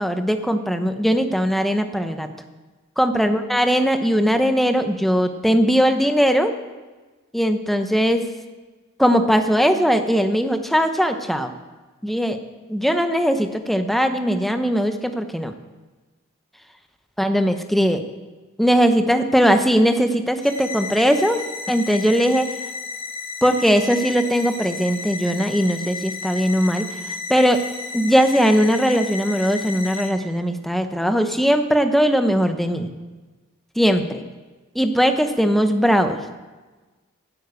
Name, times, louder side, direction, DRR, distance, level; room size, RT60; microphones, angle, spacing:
voice 1, 0.0-2.3 3.0-6.5 7.3-8.3 9.0-11.5 12.0-12.4 12.7-15.5 17.2-18.0 18.6-22.5 23.4-26.9 27.3-27.6 27.9-32.9 33.8-34.2 34.8-36.2, equal, ahead, 7 dB, 0.7 m, -19 dB
sound 1, 20.4-30.1, left 4 dB, 70° left, 2.3 m, -33 dB
10.0 x 9.2 x 8.2 m, 1.3 s
head